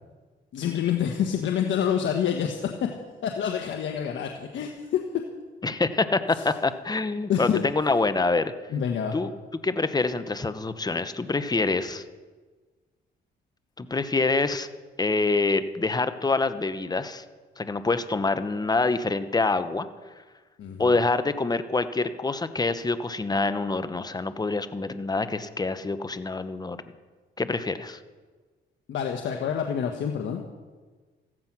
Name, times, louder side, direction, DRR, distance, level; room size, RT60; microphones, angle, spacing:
voice 1, 0.5-2.9 3.2-5.0 6.3-6.5 7.3-7.6 8.7-9.2 20.6-20.9 28.9-30.4, left 8 dB, 70° left, 3 dB, 1.4 m, -27 dB
voice 2, 5.6-8.5 9.1-9.3 9.6-12.0 13.8-14.7 15.0-17.2 17.6-19.9 20.8-26.8 27.4-28.0, left 3 dB, 20° left, 11 dB, 1.0 m, -26 dB
15.0 x 14.0 x 6.1 m, 1.4 s
cardioid pair, 90°, 20 cm